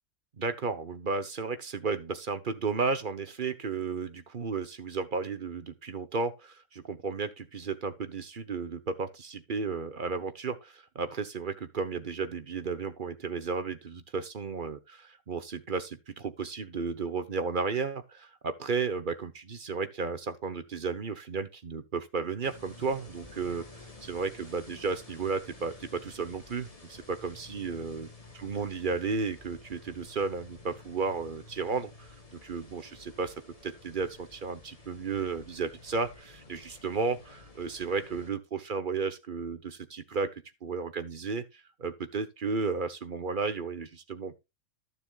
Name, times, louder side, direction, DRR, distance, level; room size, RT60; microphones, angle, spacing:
voice 1, 0.4-23.6 24.0-28.1 28.4-32.1 32.4-33.3 33.6-40.3 40.6-41.4 41.8-44.4, right 4 dB, 40° right, 1.0 m, -33 dB
sound 1, 22.4-38.3, left 2 dB, 25° left, 1.7 m, -52 dB
14.0 x 6.9 x 2.4 m
omnidirectional pair, 1.6 m